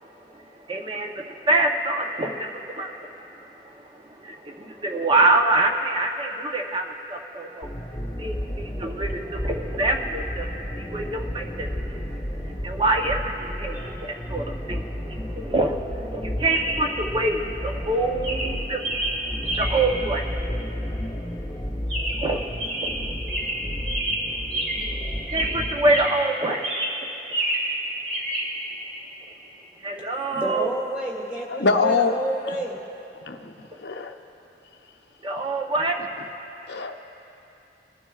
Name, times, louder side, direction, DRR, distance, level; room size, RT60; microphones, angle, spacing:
voice 1, 0.3-7.7 8.2-12.0 12.4-20.2 22.2-22.4 22.8-23.2 25.3-26.6 29.8-30.7 35.2-36.0, right 2 dB, 30° right, 0.8 m, -26 dB
sound 1, 7.6-26.1, equal, 10° left, 1.2 m, -32 dB
Chirp tweet, 13.7-13.9 16.5-16.9 17.6-17.9 18.2-20.0 21.9-22.3 22.6-25.0 25.3-26.3 26.6-27.8 28.1-28.5, right 1 dB, 65° right, 2.8 m, -29 dB
voice 2, 30.3-32.8, right 1 dB, 10° right, 2.3 m, -29 dB
voice 3, 31.5-32.2 33.2-33.5 33.8-34.2 36.7-37.0, left 4 dB, 65° left, 0.7 m, -23 dB
22.0 x 12.0 x 2.4 m
head